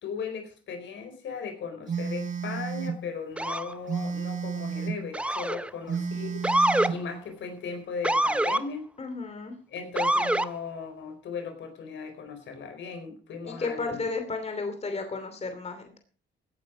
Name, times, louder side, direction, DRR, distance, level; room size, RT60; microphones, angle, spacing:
voice 1, 0.0-6.4 6.9-8.8 9.7-14.1, left 5 dB, 70° left, 6 dB, 4.4 m, -37 dB
Telephone, 1.9-3.0 3.9-5.0 5.9-7.0, right 6 dB, 40° right, 3.8 m, -32 dB
Motor vehicle (road) / Siren, 3.4-3.7 5.1-5.7 6.4-6.9 8.0-8.6 10.0-10.5, right 1 dB, 5° right, 0.6 m, -25 dB
voice 2, 9.0-9.6 13.4-16.0, left 3 dB, 35° left, 6 dB, 2.8 m, -33 dB
17.0 x 9.4 x 5.1 m, 0.41 s
cardioid pair, 90°, 20 cm